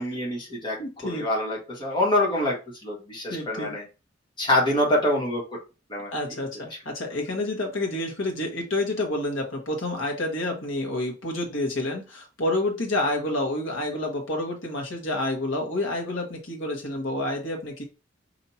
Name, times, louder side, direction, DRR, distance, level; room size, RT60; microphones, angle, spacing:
voice 1, 0.0-0.8 1.0-2.6 2.8-3.9 4.4-5.4 5.9-6.1, left 1 dB, 25° left, 1.7 m, -25 dB
voice 2, 0.8-1.3 3.3-3.7 6.1-17.8, left 1 dB, 80° left, 1.4 m, -29 dB
5.1 x 2.8 x 2.8 m
head